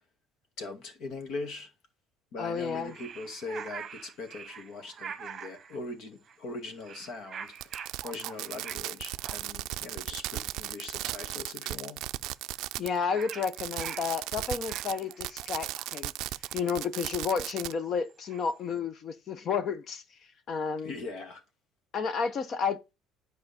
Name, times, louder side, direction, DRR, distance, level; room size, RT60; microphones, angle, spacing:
voice 1, 0.6-1.7 2.3-7.5 8.0-12.0 20.8-21.4, left 3 dB, 60° left, 2.3 m, -40 dB
voice 2, 2.4-2.9 12.8-16.1 16.5-20.0 20.5-20.9 21.9-22.9, left 6 dB, 40° left, 0.9 m, -31 dB
sound 1, 2.5-5.8 6.2-6.5 6.8-8.9 9.2-9.4 10.0-10.1 10.3-10.5 10.8-11.2 11.4-11.5 11.7-11.8 12.0-18.7, right 7 dB, 30° right, 1.0 m, -45 dB
Fireworks, 7.6-13.0 13.2-17.7, right 16 dB, 70° right, 0.4 m, -36 dB
10.5 x 4.8 x 4.3 m
cardioid pair, 145°, 0 cm